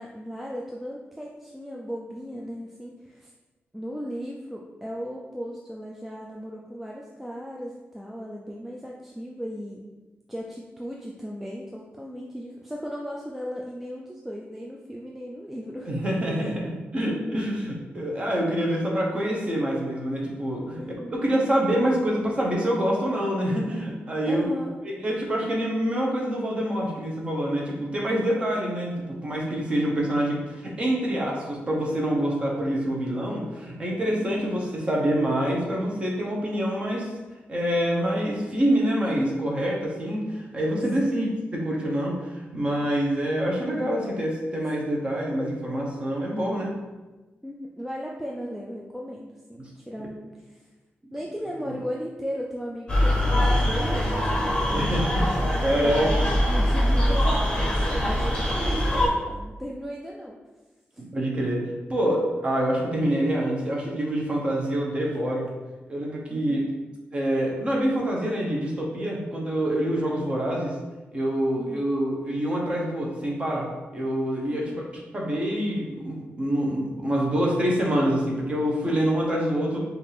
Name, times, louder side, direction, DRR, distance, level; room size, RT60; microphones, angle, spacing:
voice 1, 0.0-3.3 3.7-9.9 10.3-15.9 20.8-21.2 24.2-24.8 34.0-34.5 41.0-41.3 47.4-50.7 51.1-55.1 55.4-57.4 57.7-60.4 60.9-61.0 66.3-66.7 71.6-71.9 74.5-74.8, equal, 5° right, -2 dB, 0.3 m, -36 dB
voice 2, 15.9-20.8 21.1-24.4 24.8-37.1 37.5-41.3 41.5-46.7 49.6-49.7 50.0-50.1 54.7-56.1 61.1-61.6 61.9-65.5 65.9-66.6 67.1-70.8 71.1-74.8 75.1-79.8, equal, 25° right, -2 dB, 0.8 m, -26 dB
sound 1, 52.9-59.1, equal, 20° left, 0.9 m, -23 dB
5.1 x 2.5 x 3.3 m, 1.2 s
wide cardioid pair, 180°, 4 cm